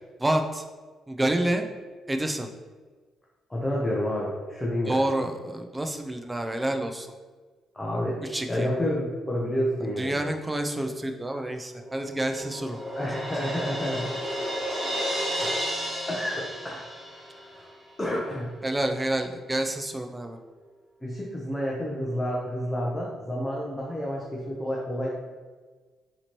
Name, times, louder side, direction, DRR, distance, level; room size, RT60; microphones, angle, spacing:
voice 1, 0.2-0.6 1.1-1.6 2.1-2.5 4.9-7.1 8.3-8.7 10.0-12.8 18.6-20.4, right 1 dB, 15° right, 5 dB, 0.4 m, -28 dB
voice 2, 3.5-5.0 7.7-10.2 13.0-14.1 15.4-17.7 18.0-18.5 21.0-25.1, equal, 15° left, -4 dB, 0.7 m, -30 dB
Crash cymbal, 11.8-17.5, equal, 35° right, 1.5 m, -32 dB
4.0 x 2.9 x 3.0 m, 1.4 s
cardioid pair, 90°, 0 cm